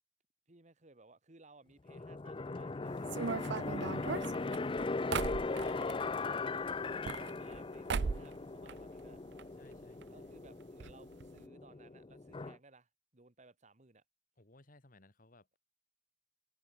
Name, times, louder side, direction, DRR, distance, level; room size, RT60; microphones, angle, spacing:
voice 1, 0.5-3.9 4.5-5.8 6.3-9.2 10.1-14.0, right 3 dB, 35° right, 1.6 m, -61 dB
sound 1, 1.9-12.6, left 3 dB, 25° left, 0.5 m, -39 dB
sound 2, 3.1-6.0 6.8-7.6 7.9-8.4 8.7-9.5 9.7-9.8 10.0-10.1 10.8-10.9 11.2-11.4, right 5 dB, 60° right, 0.5 m, -38 dB
voice 2, 9.4-10.3 14.4-15.6, left 2 dB, 45° left, 2.2 m, -63 dB
head